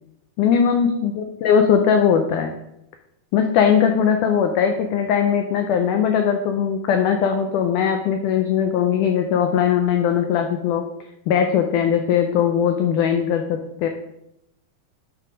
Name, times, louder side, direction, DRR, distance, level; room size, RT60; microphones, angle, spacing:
voice 1, 0.4-2.5 3.3-10.8 11.3-13.9, left 7 dB, 85° left, 5 dB, 1.8 m, -19 dB
8.7 x 4.7 x 5.1 m, 0.84 s
omnidirectional pair, 4.4 m